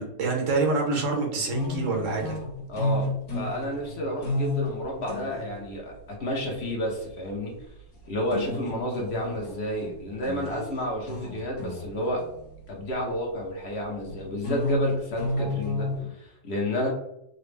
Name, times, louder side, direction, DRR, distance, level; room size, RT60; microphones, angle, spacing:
voice 1, 0.0-2.4, right 3 dB, 60° right, 1 dB, 1.1 m, -26 dB
sound 1, 1.5-5.9 6.5-6.6 8.3-13.0 14.1-16.0, left 2 dB, 75° left, 1.6 m, -31 dB
voice 2, 2.7-7.5 8.1-12.3 12.7-16.9, equal, 55° left, -1 dB, 0.9 m, -31 dB
3.9 x 2.0 x 3.3 m, 0.81 s
omnidirectional pair, 1.6 m